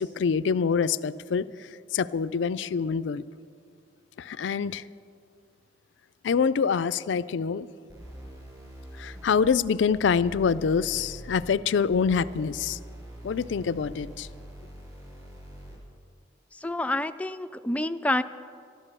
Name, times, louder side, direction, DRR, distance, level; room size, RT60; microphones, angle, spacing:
voice 1, 0.0-1.5 1.9-3.2 4.2-4.8 6.2-7.7 9.0-12.8 13.2-14.3, left 6 dB, 80° left, 16 dB, 0.4 m, -25 dB
sound 1, 7.9-15.9, equal, 20° right, 3.6 m, -44 dB
voice 2, 16.5-18.2, left 1 dB, 5° left, 11 dB, 0.3 m, -28 dB
12.5 x 12.0 x 6.7 m, 2.3 s
head